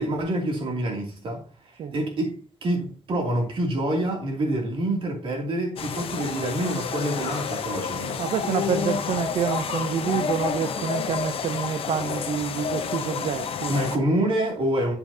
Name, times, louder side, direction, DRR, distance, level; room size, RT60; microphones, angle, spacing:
voice 1, 0.0-8.2 13.7-15.0, right 1 dB, 60° right, 2.6 m, -27 dB
sound 1, 5.8-14.0, left 6 dB, 65° left, 0.9 m, -30 dB
voice 2, 8.2-13.7, right 7 dB, 75° right, 0.6 m, -27 dB
8.3 x 6.9 x 2.7 m
wide cardioid pair, 170°, 10 cm